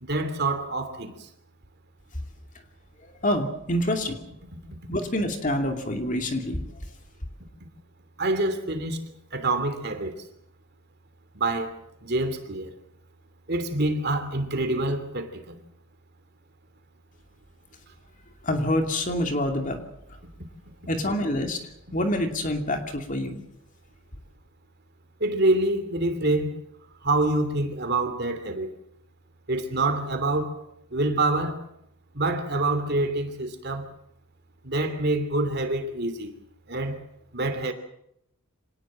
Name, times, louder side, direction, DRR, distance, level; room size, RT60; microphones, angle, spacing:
voice 1, 0.0-1.3 8.2-9.0 9.3-10.1 11.3-11.7 12.0-12.7 13.5-15.6 25.2-26.6 27.0-28.7 29.5-30.6 30.9-31.6 32.1-33.9 34.6-36.3 36.7-37.0 37.3-37.7, right 2 dB, 45° right, 3.0 m, -26 dB
voice 2, 3.2-4.2 4.9-6.6 18.4-19.8 20.9-21.6 21.9-23.4, left 1 dB, 35° left, 2.6 m, -26 dB
26.0 x 19.0 x 7.4 m
head